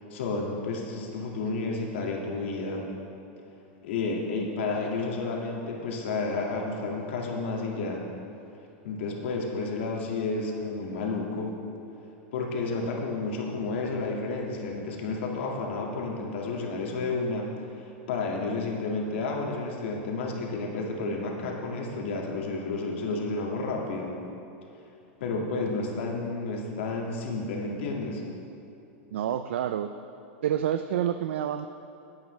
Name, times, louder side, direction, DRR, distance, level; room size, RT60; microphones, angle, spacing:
voice 1, 0.0-2.9 3.8-8.0 8.8-11.5 12.3-17.5 17.7-24.1 25.2-28.2, left 3 dB, 80° left, -1 dB, 1.9 m, -31 dB
voice 2, 29.1-29.9 30.4-31.7, right 10 dB, 90° right, 10 dB, 0.4 m, -28 dB
16.5 x 8.5 x 3.2 m, 2.7 s
supercardioid pair, 145°, 6 cm